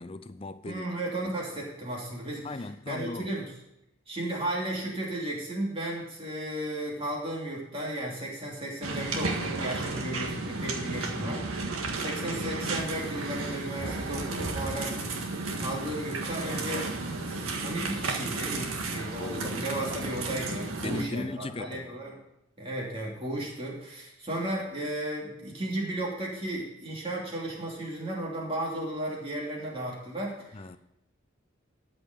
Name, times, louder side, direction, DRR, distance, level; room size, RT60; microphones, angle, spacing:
voice 1, 0.0-0.9 2.4-3.3 10.9-12.0 14.8-15.0 19.2-19.7 20.8-21.9 30.5-30.8, left 2 dB, 25° left, 0.5 m, -38 dB
voice 2, 0.6-2.5 2.9-3.5 4.1-11.4 11.9-15.0 15.6-16.9 17.2-22.2 22.6-30.8, right 1 dB, 25° right, 2.7 m, -34 dB
sound 1, 8.8-21.0, right 3 dB, 90° right, 1.7 m, -33 dB
13.5 x 5.5 x 6.7 m
head